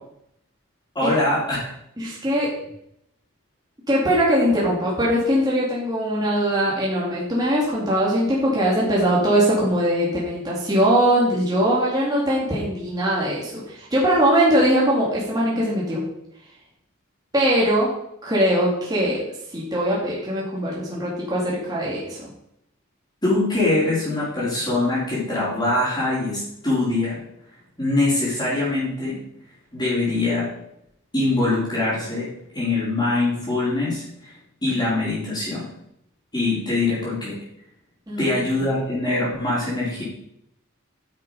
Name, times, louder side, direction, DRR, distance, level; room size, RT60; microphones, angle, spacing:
voice 1, 0.9-1.7 23.2-27.2 27.8-29.2 29.7-30.5 31.1-32.3 32.5-34.3 34.6-35.7 36.3-37.4 38.2-40.0, left 2 dB, 20° left, -12 dB, 3.8 m, -23 dB
voice 2, 2.0-2.5 3.9-16.0 17.3-17.9 18.2-19.2 19.5-22.3 38.1-38.7, equal, 20° right, -6 dB, 2.4 m, -21 dB
9.4 x 6.4 x 5.5 m, 0.76 s
head